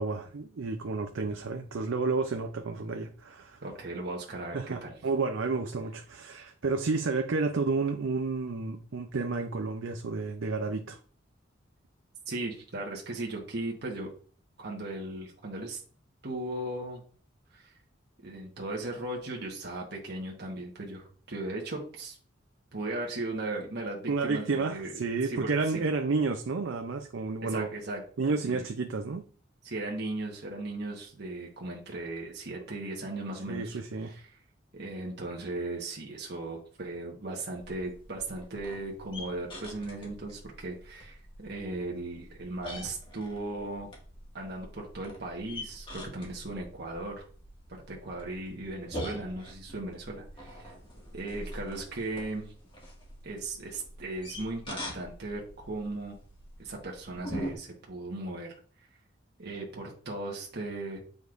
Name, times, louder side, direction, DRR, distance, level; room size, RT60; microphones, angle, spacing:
voice 1, 0.0-3.6 4.5-11.0 24.1-27.7 28.2-29.2 33.5-34.1, right 4 dB, 90° right, 0.5 m, -31 dB
voice 2, 3.6-4.9 12.3-14.1 14.6-15.8 16.2-17.0 17.5-17.7 18.2-22.2 22.7-25.8 27.4-28.0 28.3-28.6 29.6-33.8 34.1-34.4 34.7-43.9 44.3-47.2 47.9-50.7 51.1-52.5 53.2-56.2 56.6-58.5 59.4-61.0, right 2 dB, 60° right, 1.3 m, -37 dB
sound 1, 37.6-57.5, equal, 25° left, 1.8 m, -44 dB
7.8 x 5.2 x 2.5 m
head